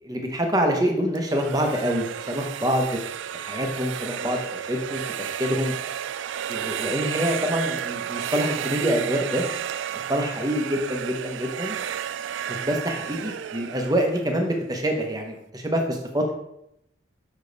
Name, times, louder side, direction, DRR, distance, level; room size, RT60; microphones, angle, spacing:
voice 1, 0.0-2.9 3.3-5.0 5.4-5.7 6.5-9.4 10.1-11.8 12.5-16.3, equal, 20° right, 2 dB, 1.0 m, -26 dB
sound 1, 1.2-15.0, right 9 dB, 80° right, 0.3 m, -32 dB
6.3 x 5.2 x 4.0 m, 0.78 s
head